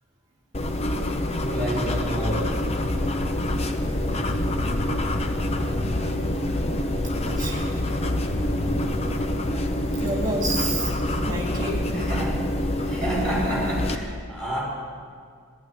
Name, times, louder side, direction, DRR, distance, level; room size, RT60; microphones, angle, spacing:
sound 1, 0.5-14.0, left 1 dB, 30° left, 0.7 m, -26 dB
voice 1, 1.3-2.6 11.9-12.5 12.8-14.6, right 1 dB, 5° left, -7 dB, 4.7 m, -29 dB
sound 2, 2.6-11.8, left 1 dB, 65° left, 2.7 m, -35 dB
voice 2, 7.2-7.6 10.0-10.9 11.2-11.9, right 2 dB, 20° right, -2 dB, 2.9 m, -29 dB
15.5 x 11.0 x 7.7 m, 2.1 s
head